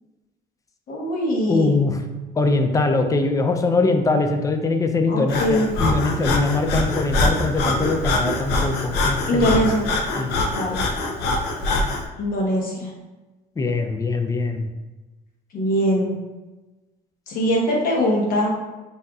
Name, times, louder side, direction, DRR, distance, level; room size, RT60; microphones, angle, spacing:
voice 1, 0.9-1.8 5.1-5.7 9.3-9.9 10.5-10.8 12.2-12.9 15.5-16.1 17.3-18.5, equal, 55° left, -2 dB, 1.0 m, -22 dB
voice 2, 1.5-2.0 2.4-9.5 10.1-10.3 13.6-14.7, left 3 dB, 20° left, 6 dB, 0.4 m, -22 dB
Breathing, 5.3-12.1, left 2 dB, 80° left, 0.5 m, -24 dB
5.3 x 2.6 x 2.3 m, 1.1 s
cardioid pair, 110°, 17 cm